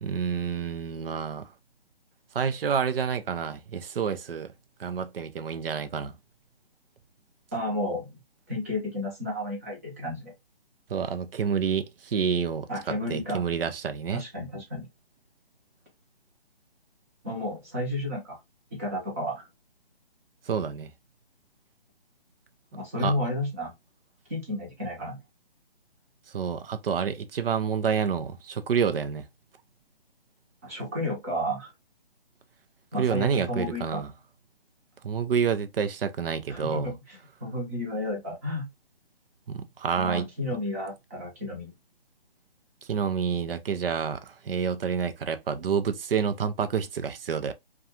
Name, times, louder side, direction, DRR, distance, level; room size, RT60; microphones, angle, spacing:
voice 1, 0.0-1.5 2.3-4.5 4.8-6.1 10.9-14.2 20.5-20.9 23.0-23.1 26.3-29.3 33.0-34.1 35.0-36.9 39.5-40.3 42.9-47.5, right 7 dB, 65° right, 0.5 m, -28 dB
voice 2, 7.5-8.2 8.5-10.3 12.7-13.4 14.1-14.9 17.2-18.4 18.7-19.5 22.7-23.7 24.3-25.2 30.6-31.7 32.9-34.0 36.5-38.7 40.0-41.7, left 1 dB, 15° right, 0.6 m, -32 dB
2.4 x 2.3 x 2.7 m
hypercardioid pair, 160°, 31 cm